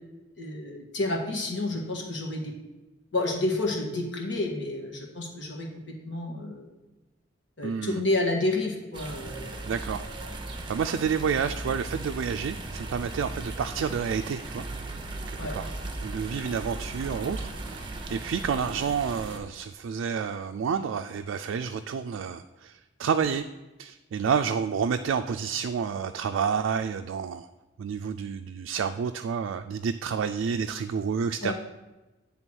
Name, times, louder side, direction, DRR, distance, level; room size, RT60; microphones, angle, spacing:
voice 1, 0.4-2.5 3.1-5.7 6.0-6.7 7.6-9.6 15.4-15.5 31.4-31.5, left 2 dB, 70° left, 0 dB, 1.5 m, -30 dB
voice 2, 7.6-8.0 9.7-10.1 10.5-14.6 15.5-15.7 16.0-23.4 23.8-27.5 27.8-31.5, right 6 dB, 85° right, 6 dB, 0.3 m, -29 dB
sound 1, 8.9-19.4, right 2 dB, 25° right, 0.7 m, -37 dB
9.0 x 3.5 x 6.1 m, 1.1 s
head